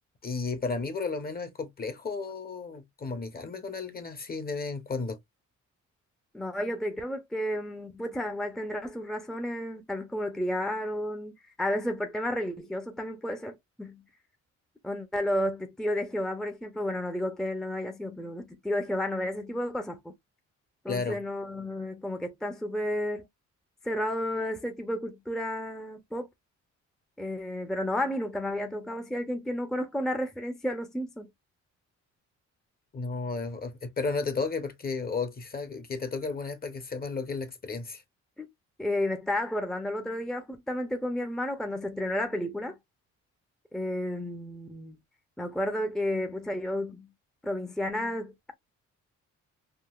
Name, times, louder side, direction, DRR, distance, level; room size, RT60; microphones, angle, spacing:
voice 1, 0.2-5.2 20.9-21.2 32.9-38.0, left 4 dB, 30° left, 0.8 m, -33 dB
voice 2, 6.3-14.0 14.8-20.1 20.8-23.3 23.8-26.3 27.2-31.3 38.4-38.5 38.8-42.8 43.7-45.0 45.4-47.1 47.4-48.3, left 1 dB, ahead, 0.6 m, -32 dB
3.7 x 2.4 x 2.3 m
cardioid pair, 90°, 30 cm